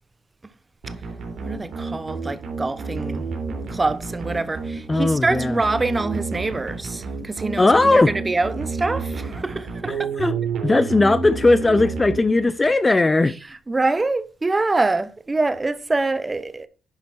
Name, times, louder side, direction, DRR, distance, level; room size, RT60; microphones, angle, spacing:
sound 1, 0.8-12.7, right 4 dB, 60° right, 3.3 m, -30 dB
voice 1, 1.4-3.3 3.7-10.3 13.7-16.7, right 3 dB, 20° right, 0.9 m, -25 dB
voice 2, 4.9-5.6 7.6-8.1 10.2-10.4 10.6-13.3, left 2 dB, 20° left, 0.5 m, -17 dB
10.5 x 5.2 x 4.4 m
cardioid pair, 90°, 0 cm